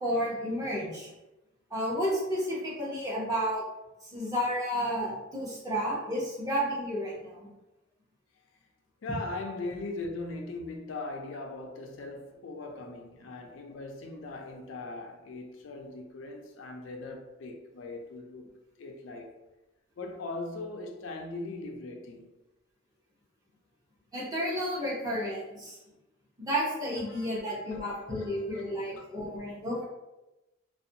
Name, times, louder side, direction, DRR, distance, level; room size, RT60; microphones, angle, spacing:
voice 1, 0.0-1.1 1.7-3.6 4.1-7.5 24.1-25.8 26.4-29.8, equal, 20° right, 0.8 m, -31 dB
voice 2, 9.0-18.5 18.8-19.4 20.0-22.3 27.0-29.1, left 2 dB, 80° left, 0.4 m, -40 dB
2.5 x 2.1 x 2.7 m
head